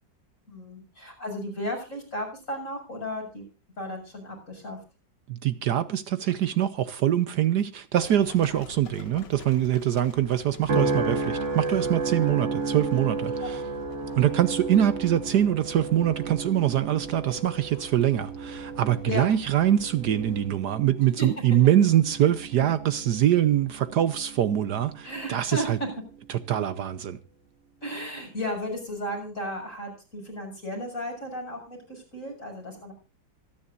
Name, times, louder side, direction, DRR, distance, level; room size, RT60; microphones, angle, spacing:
voice 1, 0.5-3.4 3.8-4.8 12.3-12.4 13.4-13.5 19.1-19.3 21.2-21.3 21.6-21.8 25.0-25.9 27.8-32.9, equal, 45° left, 7.2 m, -34 dB
voice 2, 5.3-13.6 14.2-25.8 26.3-27.2, right 11 dB, 70° right, 1.3 m, -24 dB
Livestock farm animals working animals, 8.0-20.5, left 4 dB, 70° left, 2.2 m, -47 dB
sound 1, 10.7-25.2 25.7-26.1, right 3 dB, 40° right, 1.6 m, -33 dB
26.0 x 10.5 x 2.6 m
omnidirectional pair, 2.0 m